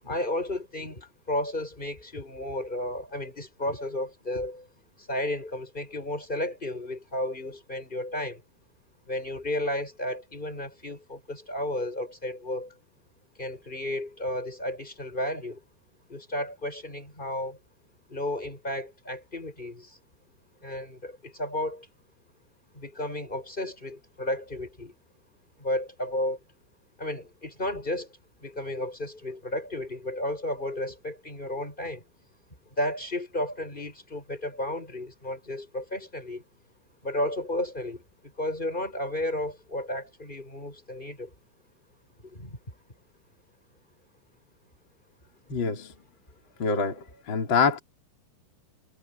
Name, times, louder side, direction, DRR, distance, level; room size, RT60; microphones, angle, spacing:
voice 1, 0.0-4.7 5.0-8.4 9.1-12.7 13.4-15.6 16.1-17.6 18.1-20.0 20.6-21.9 22.7-24.9 25.6-26.4 27.0-28.1 28.4-32.0 32.8-36.4 37.0-38.0 38.4-41.3 42.2-42.6, left 1 dB, 10° left, 7.7 m, -33 dB
voice 2, 45.5-45.9 46.6-47.8, left 5 dB, 25° left, 3.5 m, -25 dB
omnidirectional pair, 5.7 m